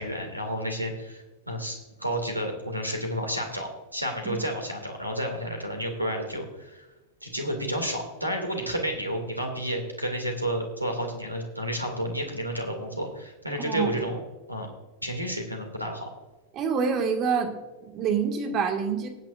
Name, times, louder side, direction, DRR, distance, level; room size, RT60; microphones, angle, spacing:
voice 1, 0.0-6.9 7.2-14.2 14.5-14.7 15.0-16.1, equal, 85° right, 3 dB, 2.3 m, -31 dB
voice 2, 16.5-17.6 17.8-19.1, right 6 dB, 35° right, 4 dB, 1.9 m, -26 dB
18.5 x 8.8 x 2.5 m, 1.1 s
figure-of-eight pair, 90°, 0 cm